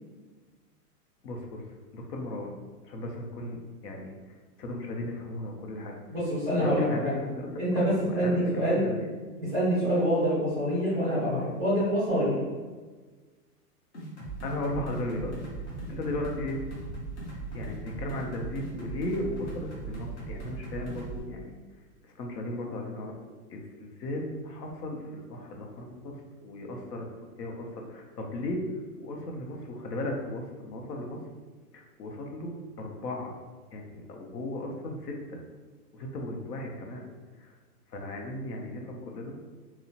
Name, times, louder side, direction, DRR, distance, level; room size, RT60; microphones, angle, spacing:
voice 1, 1.2-1.6 1.9-2.5 2.8-4.2 4.6-5.9 6.6-7.5 8.1-9.1 14.4-15.3 15.9-16.6 17.5-21.5 22.0-23.2 23.5-26.2 26.4-27.1 27.4-28.6 29.0-31.2 31.7-33.3 33.7-35.4 35.9-37.0 37.4-37.5 37.9-39.3, left 1 dB, 75° left, 1 dB, 0.7 m, -36 dB
voice 2, 6.1-7.1 7.6-8.9 9.4-12.4, equal, 10° right, -13 dB, 0.6 m, -26 dB
sound 1, 13.9-21.2, right 3 dB, 45° left, 0.9 m, -39 dB
2.8 x 2.0 x 2.7 m, 1.4 s
hypercardioid pair, 175°, 48 cm